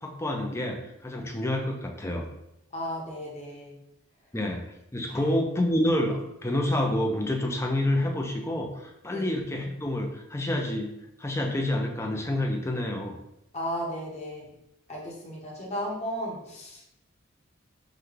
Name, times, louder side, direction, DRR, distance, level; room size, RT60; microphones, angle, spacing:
voice 1, 0.0-2.2 4.3-4.6 4.9-10.9 11.2-13.1, left 1 dB, 15° left, 2 dB, 0.5 m, -28 dB
voice 2, 2.7-3.7 5.1-5.2 9.1-9.3 13.5-14.5 14.9-16.9, equal, 35° left, -4 dB, 1.2 m, -35 dB
5.7 x 2.3 x 3.3 m, 0.85 s
head